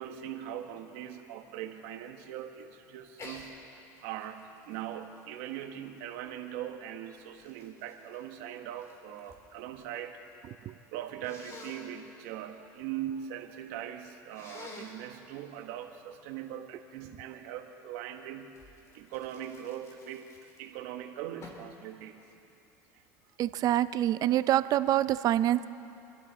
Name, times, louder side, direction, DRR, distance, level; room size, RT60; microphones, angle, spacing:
voice 1, 0.0-3.6 4.0-10.2 10.9-18.6 18.9-22.2, right 10 dB, 80° right, 6 dB, 1.3 m, -41 dB
Sneeze, 3.1-3.5 3.9-6.3 7.0-9.4 9.7-10.4 11.2-11.9 14.3-15.0 18.5-20.8 21.4-21.7, left 2 dB, 35° left, 3.0 m, -50 dB
voice 2, 23.4-25.7, right 13 dB, 50° right, 15 dB, 0.5 m, -26 dB
26.5 x 12.0 x 4.2 m, 2.9 s
supercardioid pair, 110°, 8 cm